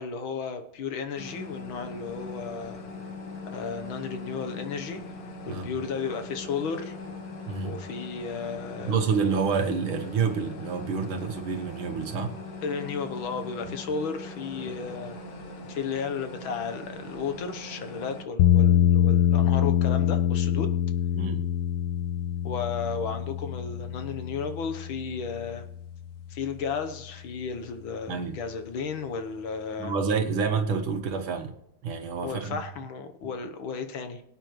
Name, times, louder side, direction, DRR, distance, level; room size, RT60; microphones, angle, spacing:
voice 1, 0.0-2.8 3.5-5.0 5.5-6.9 7.6-9.0 12.6-15.2 15.7-20.7 22.4-25.6 26.3-29.9 32.2-34.2, left 5 dB, 70° left, 8 dB, 1.7 m, -34 dB
sound 1, 1.2-18.2, left 2 dB, 50° left, 1.6 m, -41 dB
voice 2, 8.8-12.4 13.6-13.7 14.7-14.8 21.1-21.4 28.1-28.4 29.8-31.5 31.8-32.6, right 5 dB, 70° right, 5 dB, 1.8 m, -28 dB
sound 2, 18.4-26.5, left 11 dB, 85° left, 1.7 m, -25 dB
22.0 x 9.0 x 3.1 m, 0.80 s
omnidirectional pair, 2.4 m